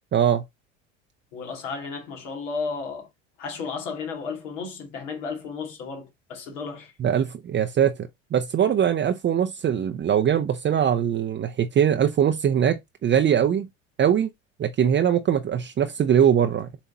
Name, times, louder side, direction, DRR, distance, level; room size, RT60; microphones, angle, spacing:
voice 1, 0.1-0.4 7.0-7.9 8.3-13.7 14.0-14.3 14.6-16.7, right 9 dB, 30° right, 0.7 m, -21 dB
voice 2, 1.3-3.1 3.4-6.9, left 5 dB, 70° left, 2.4 m, -33 dB
7.2 x 3.4 x 4.1 m
hypercardioid pair, 75°, 38 cm